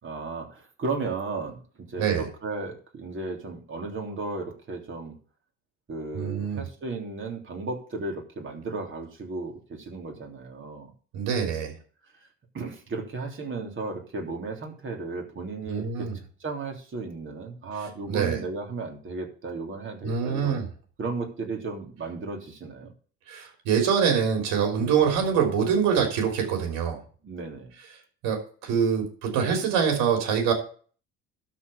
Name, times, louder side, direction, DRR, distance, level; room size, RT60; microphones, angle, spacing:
voice 1, 0.0-1.6 1.9-5.2 5.9-10.9 12.2-12.3 12.5-20.6 21.0-22.9 24.8-25.0 27.2-27.7, right 3 dB, 35° right, 2 dB, 3.3 m, -35 dB
voice 2, 6.1-6.6 11.1-11.7 15.7-16.1 18.1-18.4 20.0-20.7 23.3-27.0 28.2-30.5, right 7 dB, 75° right, 2 dB, 3.4 m, -24 dB
12.5 x 4.6 x 7.0 m, 0.42 s
supercardioid pair, 80°, 33 cm